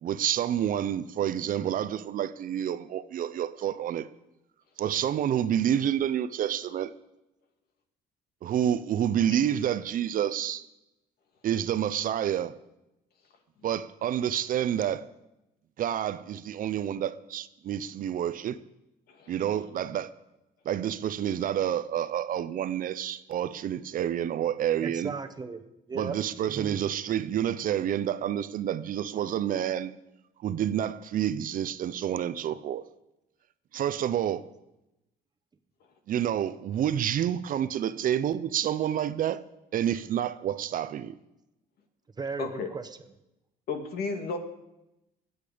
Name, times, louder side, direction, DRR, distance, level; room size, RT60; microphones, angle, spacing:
voice 1, 0.0-4.1 4.8-6.9 8.4-10.6 11.4-12.6 13.6-15.1 15.8-18.6 19.3-20.1 20.6-25.1 25.9-29.9 30.4-32.8 33.7-34.5 36.1-39.4 39.7-41.2, right 10 dB, 55° right, 0.7 m, -28 dB
voice 2, 24.8-26.2 26.5-26.7 42.2-43.1, right 4 dB, 25° right, 1.1 m, -37 dB
voice 3, 42.4-42.7 43.7-44.4, left 4 dB, 65° left, 2.4 m, -33 dB
22.0 x 8.2 x 5.2 m
cardioid pair, 110°, 17 cm